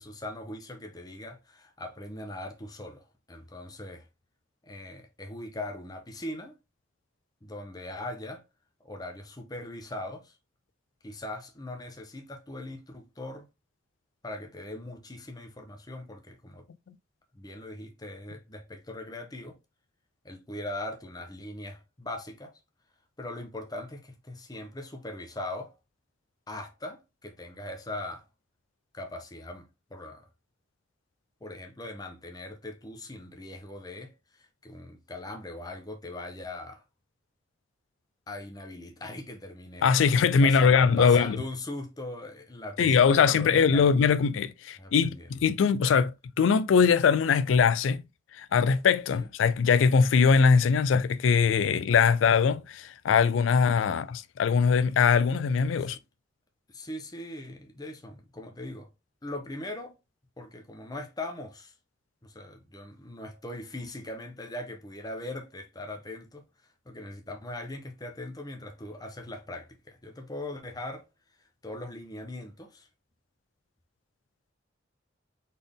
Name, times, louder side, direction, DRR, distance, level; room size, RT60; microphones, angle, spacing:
voice 1, 0.0-4.1 4.6-6.6 7.4-8.4 8.8-10.4 11.0-13.5 14.2-16.6 17.3-19.6 20.2-22.6 23.2-25.7 26.5-28.3 28.9-30.2 31.4-36.8 38.3-39.9 40.4-43.9 44.8-45.3 49.2-49.3 53.9-54.0 55.8-56.0 56.7-58.9 59.2-60.0 60.4-61.7 62.2-66.4 66.9-71.0 71.6-72.9, left 1 dB, 20° left, 0.8 m, -40 dB
voice 2, 39.8-41.4 42.8-46.1 46.4-48.0 48.3-56.0, left 6 dB, 90° left, 0.4 m, -22 dB
4.1 x 3.5 x 3.5 m
head